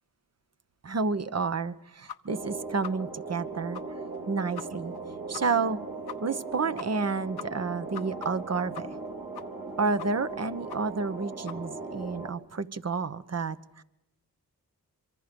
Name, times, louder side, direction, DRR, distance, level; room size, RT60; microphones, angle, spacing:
voice 1, 0.8-3.8 4.3-4.9 5.3-5.8 6.2-8.9 9.8-13.8, right 4 dB, 40° right, 12 dB, 1.1 m, -30 dB
sound 1, 2.1-2.2 2.4-2.5 2.8-2.9 3.3-3.4 3.7-3.8 4.1-4.2 4.5-4.6 4.9-5.0 5.3-5.4 5.7-5.8 6.1-6.2 6.5-6.6 6.8-7.1 7.4-9.1 9.3-9.7 10.0-10.3 10.7-10.8 11.1-11.2 11.5-11.6, left 9 dB, 75° left, 1.1 m, -41 dB
sound 2, 2.3-12.3, right 3 dB, 60° right, 2.8 m, -38 dB
26.0 x 24.0 x 5.3 m, 0.91 s
cardioid pair, 60°, 38 cm